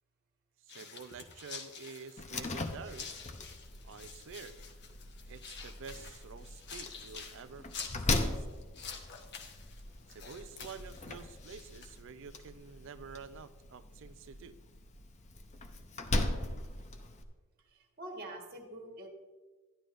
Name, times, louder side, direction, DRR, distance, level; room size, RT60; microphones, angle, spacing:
voice 1, 0.6-3.1 3.8-4.6 5.3-7.7 8.2-8.5 10.1-14.6, right 5 dB, 55° right, 13 dB, 0.4 m, -49 dB
sound 1, 0.7-12.0, left 6 dB, 50° left, 1.0 m, -48 dB
Slam, 2.2-17.2, left 2 dB, 30° left, 0.6 m, -39 dB
voice 2, 17.7-19.1, right 1 dB, 40° right, 1 dB, 1.5 m, -45 dB
11.5 x 11.0 x 2.5 m, 1.3 s
head